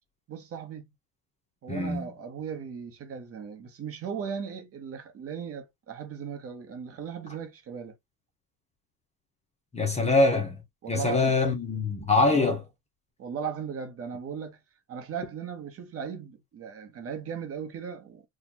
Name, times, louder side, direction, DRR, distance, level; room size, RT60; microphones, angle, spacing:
voice 1, 0.3-0.9 1.6-7.9 9.9-10.2 10.8-11.3 12.3-12.6 13.2-14.6 14.9-18.2, right 7 dB, 35° right, 0.9 m, -37 dB
voice 2, 1.7-2.1 9.7-10.6 10.9-12.6, left 3 dB, 15° left, 0.7 m, -24 dB
4.2 x 2.3 x 2.8 m
cardioid pair, 145°, 40 cm